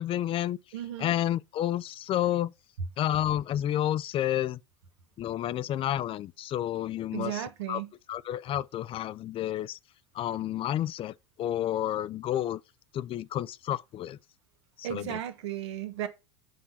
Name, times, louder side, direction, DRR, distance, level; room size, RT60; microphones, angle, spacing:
voice 1, 0.0-0.6 1.0-2.5 3.0-4.6 5.2-7.8 8.1-9.8 10.1-12.6 12.9-14.2 14.8-15.2, left 12 dB, 40° left, 0.5 m, -30 dB
voice 2, 0.7-1.1 7.1-7.9 14.8-16.1, right 12 dB, 75° right, 1.4 m, -35 dB
7.6 x 4.3 x 6.7 m
hypercardioid pair, 80°, 15 cm